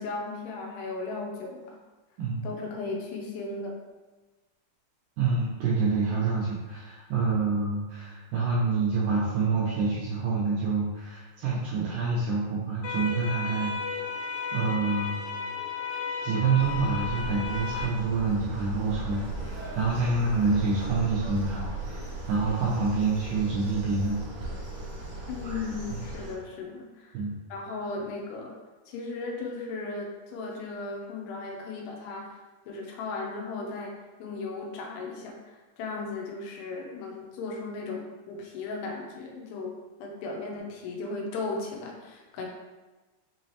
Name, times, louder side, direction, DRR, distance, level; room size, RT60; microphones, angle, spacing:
voice 1, 0.0-1.8 2.4-3.7 25.3-27.2 27.5-28.5 28.9-32.4 32.7-33.9 34.2-39.7 40.0-42.5, left 3 dB, 85° left, 0 dB, 2.7 m, -36 dB
voice 2, 5.2-13.7 14.5-15.2 16.2-24.2 27.1-27.3, right 4 dB, 85° right, -7 dB, 2.0 m, -27 dB
sound 1, 12.8-17.9, left 5 dB, 70° left, 2.1 m, -34 dB
sound 2, 16.6-26.3, right 2 dB, 65° right, 1.4 m, -37 dB
6.2 x 3.0 x 2.8 m, 1.2 s
omnidirectional pair, 4.8 m